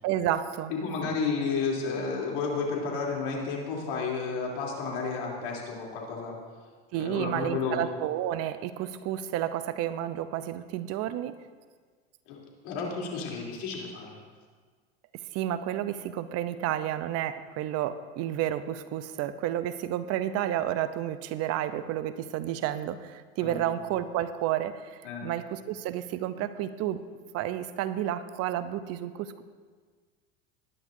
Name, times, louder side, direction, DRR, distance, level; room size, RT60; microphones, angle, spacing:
voice 1, 0.0-0.7 6.9-11.4 15.3-27.0 27.3-29.4, right 12 dB, 50° right, 13 dB, 0.7 m, -31 dB
voice 2, 0.7-6.4 6.9-7.8 12.3-12.4 12.6-14.2 23.4-23.7 25.0-25.3, left 4 dB, 65° left, -2 dB, 3.4 m, -32 dB
19.5 x 10.5 x 2.7 m, 1.6 s
hypercardioid pair, 85°, 31 cm